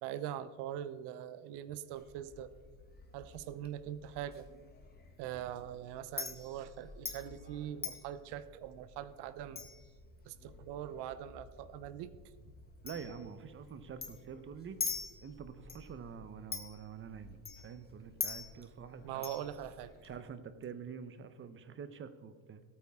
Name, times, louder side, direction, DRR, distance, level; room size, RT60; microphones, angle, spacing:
voice 1, 0.0-2.5 3.1-4.5 5.2-9.7 10.2-12.2 19.0-19.9, right 11 dB, 65° right, 14 dB, 0.8 m, -42 dB
Chink clink, 1.9-20.1, left 5 dB, 20° left, 1.6 m, -46 dB
voice 2, 12.8-14.8 15.2-19.2 20.0-22.6, right 6 dB, 30° right, 11 dB, 0.8 m, -47 dB
17.5 x 8.8 x 3.6 m, 1.5 s
cardioid pair, 125°, 44 cm